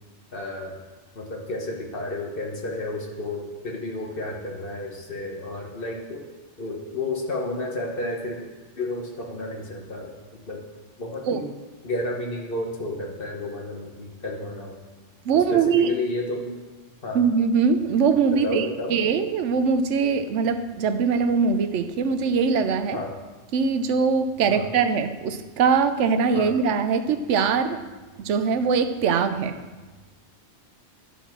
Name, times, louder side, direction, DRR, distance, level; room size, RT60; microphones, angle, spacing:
voice 1, 0.3-0.8 1.1-6.2 6.6-8.4 8.8-10.2 10.5-10.6 11.0-11.5 11.8-14.8 15.3-16.5 17.0-17.2 18.4-19.0 22.9-23.1 24.5-24.7 26.3-26.5, left 2 dB, 50° left, 0 dB, 1.3 m, -31 dB
voice 2, 15.2-16.0 17.1-23.0 23.5-27.8 28.2-29.6, right 5 dB, 85° right, 9 dB, 1.0 m, -22 dB
11.5 x 4.1 x 6.0 m, 1.3 s
omnidirectional pair, 1.2 m